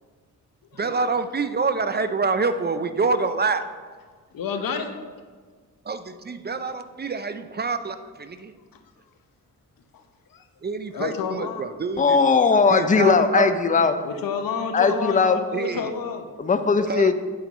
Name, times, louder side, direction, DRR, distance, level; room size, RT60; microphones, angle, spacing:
voice 1, 0.8-3.6 5.9-8.5 10.6-12.2 12.7-13.6 15.5-15.9 16.9-17.1, right 4 dB, 25° right, 10 dB, 0.5 m, -26 dB
voice 2, 4.3-4.9 10.3-10.4 10.9-11.7 14.0-16.3, left 6 dB, 60° left, 7 dB, 0.9 m, -29 dB
voice 3, 12.0-14.0 14.7-15.4 16.4-17.1, left 5 dB, 20° left, 9 dB, 0.6 m, -19 dB
8.9 x 4.3 x 4.1 m, 1.5 s
supercardioid pair, 45°, 39 cm